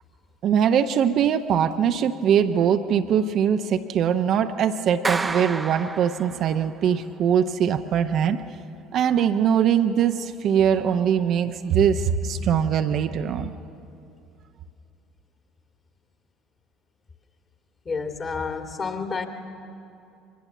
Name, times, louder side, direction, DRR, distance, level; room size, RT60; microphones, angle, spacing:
voice 1, 0.4-8.4 8.9-13.5, right 8 dB, 50° right, 8 dB, 0.8 m, -22 dB
Clapping, 5.0-6.7, right 3 dB, 20° right, 0.8 m, -30 dB
voice 2, 17.8-19.3, left 4 dB, 35° left, 5 dB, 2.3 m, -29 dB
24.0 x 20.0 x 7.3 m, 2.7 s
figure-of-eight pair, 60°, 0 cm